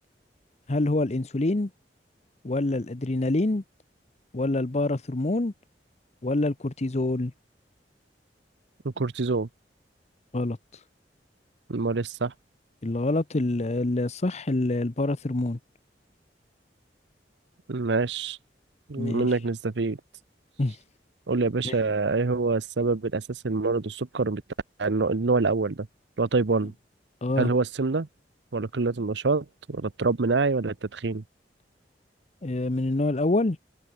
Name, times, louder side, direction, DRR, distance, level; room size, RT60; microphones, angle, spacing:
voice 1, 0.7-1.7 2.4-3.6 4.3-5.5 6.2-7.3 10.3-10.6 12.8-15.6 19.0-19.3 20.6-20.8 21.6-21.8 27.2-27.5 32.4-33.6, left 2 dB, 40° left, 0.8 m, -26 dB
voice 2, 8.8-9.5 11.7-12.3 17.7-18.4 18.9-20.0 21.3-24.4 24.8-25.9 26.2-26.7 27.4-28.1 28.5-31.2, right 3 dB, 85° right, 0.8 m, -26 dB
head